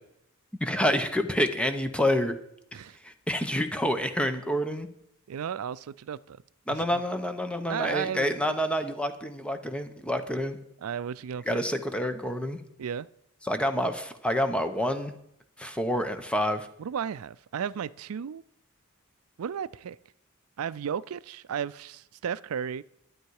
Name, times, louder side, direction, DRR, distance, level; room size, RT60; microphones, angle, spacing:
voice 1, 0.6-2.4 3.0-4.9 6.7-10.6 11.5-12.6 13.4-15.1 15.6-16.7, equal, 5° left, 0.8 m, -28 dB
voice 2, 5.3-6.4 6.7-7.0 7.7-8.6 10.8-11.6 12.8-13.1 16.8-18.4 19.4-20.0 20.6-22.8, right 8 dB, 70° right, 0.4 m, -34 dB
12.0 x 9.5 x 4.7 m
head